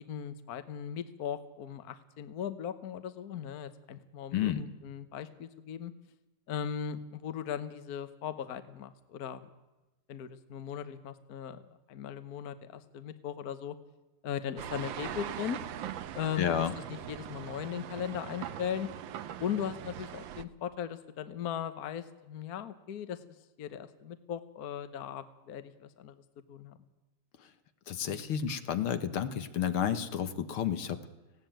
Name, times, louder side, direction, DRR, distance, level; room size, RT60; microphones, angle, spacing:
voice 1, 0.0-5.9 6.5-9.5 10.1-13.8 14.2-15.6 16.1-18.9 19.4-23.2 23.6-26.2 26.5-26.8, left 8 dB, 50° left, 12 dB, 1.3 m, -38 dB
voice 2, 4.3-4.6 16.4-16.7 27.9-31.0, left 9 dB, 75° left, 11 dB, 2.0 m, -31 dB
sound 1, 14.6-20.4, right 10 dB, 65° right, 1.5 m, -41 dB
19.0 x 16.5 x 9.1 m, 1.1 s
omnidirectional pair, 2.4 m